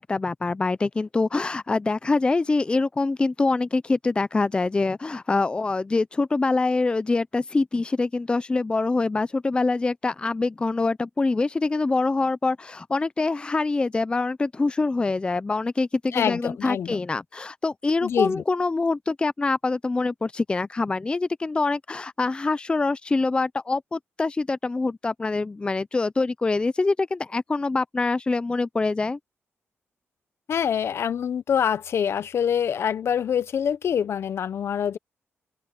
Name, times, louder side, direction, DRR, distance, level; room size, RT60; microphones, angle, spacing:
voice 1, 0.0-29.2, left 3 dB, 20° left, 0.5 m, -25 dB
voice 2, 16.1-17.0 18.0-18.4 30.5-35.0, left 8 dB, 60° left, 0.7 m, -25 dB
open air
cardioid pair, 115°, 5 cm